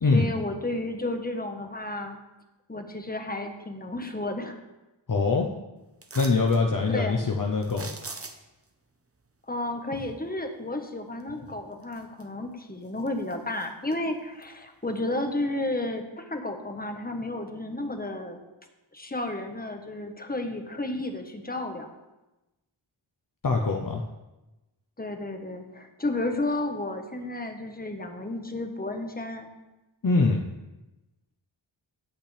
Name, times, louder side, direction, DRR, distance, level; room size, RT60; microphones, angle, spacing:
voice 1, 0.1-2.2 2.7-4.6 6.9-7.2 9.5-18.4 18.9-21.9 25.0-29.5, left 2 dB, 20° left, 4 dB, 1.4 m, -32 dB
voice 2, 5.1-5.5 6.1-7.9 23.4-24.0 30.0-30.4, left 3 dB, 45° left, 1 dB, 0.9 m, -23 dB
sound 1, 6.0-6.6 7.6-8.6 11.2-11.3 11.8-12.5 12.8-14.0 14.4-14.5, right 3 dB, 30° right, 1.0 m, -42 dB
17.0 x 5.8 x 3.4 m, 1.0 s
wide cardioid pair, 45°, 47 cm